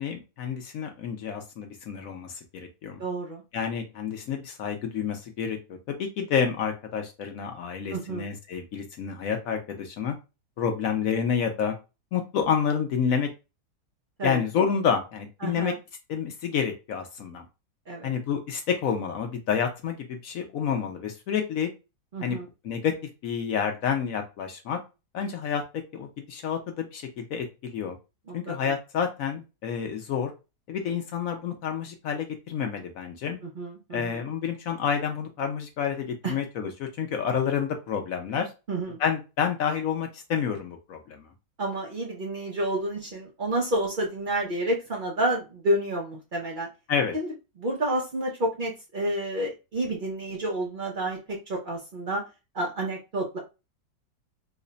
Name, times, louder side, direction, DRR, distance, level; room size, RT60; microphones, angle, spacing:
voice 1, 0.0-3.0 3.5-10.1 10.6-11.7 12.1-13.3 14.2-15.7 16.1-17.5 18.0-21.7 22.2-22.4 22.6-22.9 23.2-24.8 25.1-28.0 28.3-30.3 30.7-33.4 33.9-38.5 39.0-41.3 46.9-47.1, left 7 dB, 65° left, 4 dB, 0.9 m, -29 dB
voice 2, 3.0-3.4 7.9-8.3 14.2-14.4 15.4-15.8 17.9-18.1 22.1-22.5 28.5-28.7 33.6-34.2 36.2-36.3 38.7-39.0 41.6-46.7 47.1-47.3 47.6-52.2 52.5-53.4, right 1 dB, 80° right, -1 dB, 0.4 m, -29 dB
3.2 x 2.1 x 3.8 m, 0.28 s
omnidirectional pair, 1.9 m